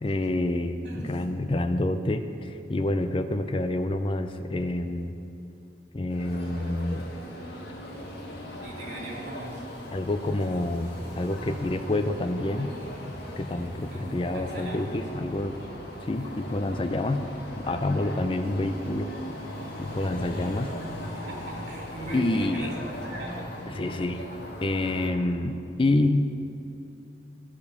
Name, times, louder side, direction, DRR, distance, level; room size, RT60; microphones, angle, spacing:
voice 1, 0.0-5.1 5.9-7.1 9.9-12.7 13.4-15.6 16.1-17.3 17.6-19.1 19.8-20.7 22.1-22.7 23.7-24.2 24.6-26.3, left 2 dB, 30° left, 8 dB, 0.4 m, -28 dB
voice 2, 0.8-1.2 8.6-9.6 13.9-15.0 21.1-23.5, right 1 dB, 70° right, -3 dB, 2.8 m, -38 dB
sound 1, 6.1-25.1, equal, 65° left, 1.7 m, -39 dB
14.5 x 5.1 x 6.9 m, 2.8 s
head